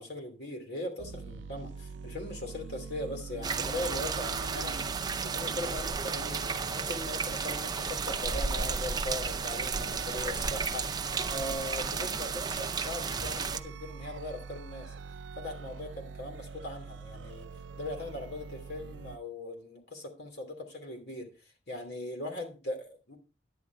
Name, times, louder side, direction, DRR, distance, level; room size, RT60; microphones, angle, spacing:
voice 1, 0.0-4.8 5.2-14.9 15.3-17.5 17.8-21.3 21.7-23.2, left 1 dB, 60° left, 3 dB, 2.8 m, -40 dB
sound 1, 1.0-19.2, right 4 dB, 90° right, 0.5 m, -44 dB
sound 2, 3.4-13.6, right 5 dB, 20° right, 0.5 m, -33 dB
10.5 x 9.1 x 3.5 m, 0.33 s
head